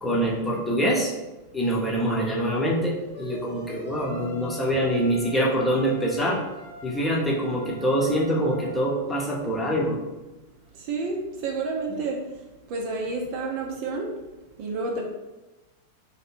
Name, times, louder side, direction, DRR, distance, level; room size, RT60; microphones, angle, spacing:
voice 1, 0.0-1.1 1.5-6.4 6.8-10.0, equal, 10° left, -4 dB, 1.0 m, -25 dB
sound 1, 3.1-8.9, equal, 55° left, 0.8 m, -43 dB
voice 2, 10.9-12.2 12.7-14.1 14.6-15.0, right 3 dB, 45° right, 0 dB, 0.7 m, -29 dB
3.3 x 2.8 x 4.4 m, 1.1 s
figure-of-eight pair, 90°, 0 cm